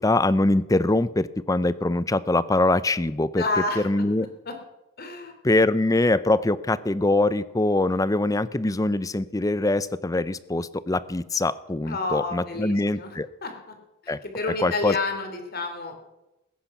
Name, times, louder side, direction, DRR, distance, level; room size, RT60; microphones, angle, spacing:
voice 1, 0.0-3.4 3.8-4.3 5.4-13.3 14.1-14.2 14.6-14.9, left 2 dB, 15° left, 16 dB, 0.5 m, -23 dB
voice 2, 3.4-3.9 4.4-4.6 5.0-5.3 11.9-13.5 14.2-16.0, left 3 dB, 45° left, 5 dB, 3.0 m, -29 dB
20.0 x 10.5 x 5.9 m, 0.98 s
head